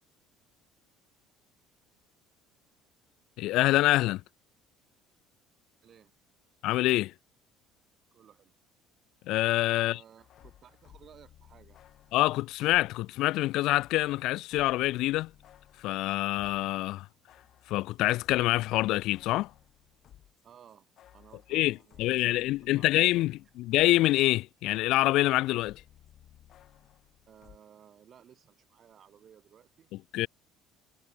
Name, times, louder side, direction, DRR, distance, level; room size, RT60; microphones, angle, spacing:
voice 1, 3.4-4.2 6.6-7.1 9.3-10.0 12.1-15.3 15.8-17.1 17.7-19.5 21.5-25.8 30.1-30.3, left 17 dB, 60° left, 0.4 m, -26 dB
voice 2, 5.8-6.1 8.1-8.5 9.8-11.8 20.4-20.9 21.1-23.3 27.3-30.3, right 9 dB, 35° right, 6.4 m, -57 dB
sound 1, 10.2-13.0 13.6-16.7 17.0-24.1 24.4-27.6, left 11 dB, 45° left, 4.8 m, -58 dB
cardioid pair, 150°, 0 cm